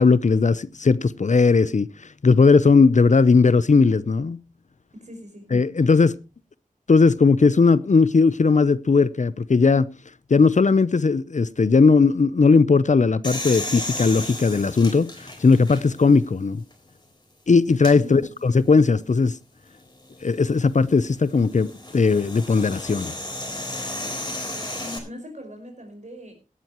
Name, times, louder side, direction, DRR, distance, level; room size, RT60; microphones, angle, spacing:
voice 1, 0.0-1.9 2.2-4.4 5.5-6.1 6.9-9.9 10.3-16.6 17.5-19.3 20.2-23.1, left 4 dB, 60° left, 0.6 m, -18 dB
voice 2, 4.9-5.5 17.9-18.3 24.8-26.3, left 1 dB, 60° right, 5.3 m, -40 dB
sound 1, 13.2-16.2 16.7-16.8 17.7-18.0 20.1-25.0, left 1 dB, 30° left, 3.9 m, -34 dB
17.5 x 12.0 x 3.0 m
wide cardioid pair, 65°, 14 cm